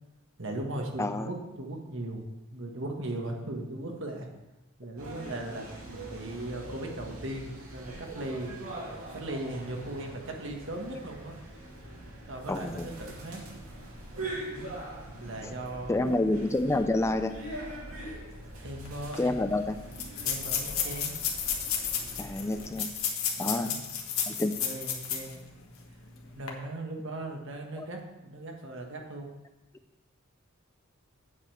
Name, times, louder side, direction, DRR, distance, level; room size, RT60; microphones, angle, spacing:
voice 1, 0.4-2.2 2.5-4.3 4.8-8.5 9.1-11.4 12.3-13.4 14.4-14.7 15.1-16.3 18.4-19.4 20.2-21.2 23.3-23.8 24.3-25.4 26.3-29.3, right 1 dB, 65° right, 2 dB, 1.5 m, -38 dB
voice 2, 1.0-1.3 12.5-12.9 15.4-15.5 15.9-17.3 19.2-19.8 22.2-22.9 23.4-23.7 24.3-24.5 27.8-27.9, left 2 dB, 15° left, 9 dB, 0.4 m, -28 dB
sound 1, 5.0-22.7, right 1 dB, 85° right, 2.5 m, -43 dB
sound 2, 18.9-19.0 19.1-19.2 19.9-25.4 25.8-25.9 26.3-26.5, left 8 dB, 80° left, 1.5 m, -32 dB
8.3 x 5.1 x 7.7 m, 0.98 s
head